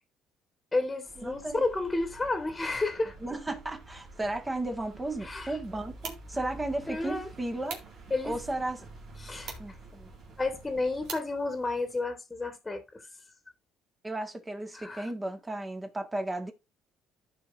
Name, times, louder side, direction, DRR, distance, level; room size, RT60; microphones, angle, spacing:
voice 1, 0.7-3.2 5.2-5.6 6.9-7.3 8.1-8.4 9.2-9.8 10.4-13.1 14.7-15.1, left 3 dB, 15° left, 1.8 m, -31 dB
sound 1, 1.1-11.1, right 2 dB, 55° right, 3.3 m, -49 dB
voice 2, 1.2-1.6 3.2-7.8 8.2-8.8 9.6-10.1 14.0-16.5, right 2 dB, 15° right, 1.7 m, -34 dB
sound 2, 5.6-12.0, right 5 dB, 70° right, 2.3 m, -48 dB
14.5 x 5.0 x 2.6 m
cardioid pair, 95°, 0 cm